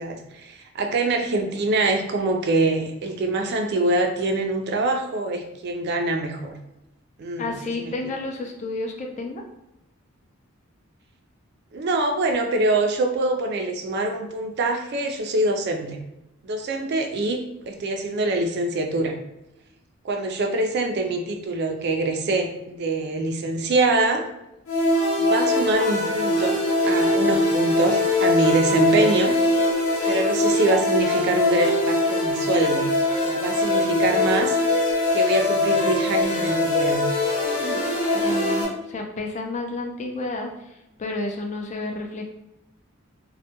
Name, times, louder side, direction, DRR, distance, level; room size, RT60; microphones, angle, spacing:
voice 1, 0.0-6.6 7.2-7.9 11.7-16.0 16.4-17.4 17.7-19.2 20.0-24.3 25.2-29.4 30.1-32.9 33.2-34.5 35.1-37.0, right 2 dB, 50° right, 4 dB, 0.3 m, -24 dB
voice 2, 7.4-9.4 37.6-37.8 38.1-42.2, left 2 dB, 35° left, 2 dB, 0.3 m, -31 dB
sound 1, 24.7-38.6, left 2 dB, 85° left, 0.7 m, -22 dB
2.1 x 2.1 x 2.8 m, 0.91 s
head